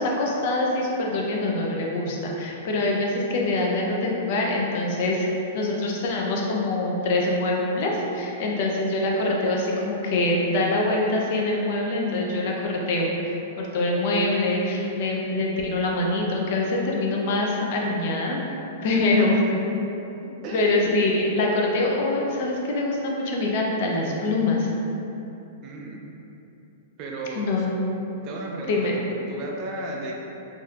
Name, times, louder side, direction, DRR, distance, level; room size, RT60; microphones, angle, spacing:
voice 1, 0.0-5.3 5.5-18.4 18.8-19.4 20.5-24.7 27.4-27.7 28.7-28.9, left 2 dB, 50° left, -1 dB, 0.5 m, -24 dB
voice 2, 18.9-19.4 20.4-20.9 25.6-26.1 27.0-27.4 28.2-30.1, right 2 dB, 30° right, -1 dB, 0.3 m, -34 dB
3.4 x 2.7 x 2.3 m, 2.9 s
supercardioid pair, 160°, 0 cm